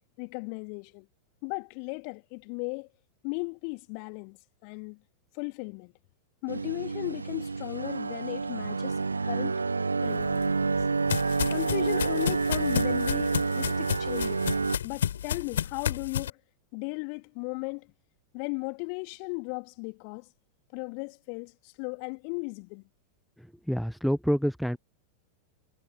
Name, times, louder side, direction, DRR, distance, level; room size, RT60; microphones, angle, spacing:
voice 1, 0.2-1.1 1.4-2.9 3.2-4.4 4.6-5.0 5.3-5.9 6.4-9.6 10.0-10.9 11.5-14.5 14.8-16.4 16.7-17.9 18.3-20.3 20.7-22.8, left 40 dB or more, 45° left, 2.5 m, -36 dB
sound 1, 6.5-14.8, right 4 dB, 80° right, 0.3 m, -29 dB
sound 2, 10.2-16.3, left 9 dB, 65° left, 3.6 m, -32 dB
voice 2, 23.4-24.8, equal, ahead, 0.8 m, -28 dB
figure-of-eight pair, 90°, 0 cm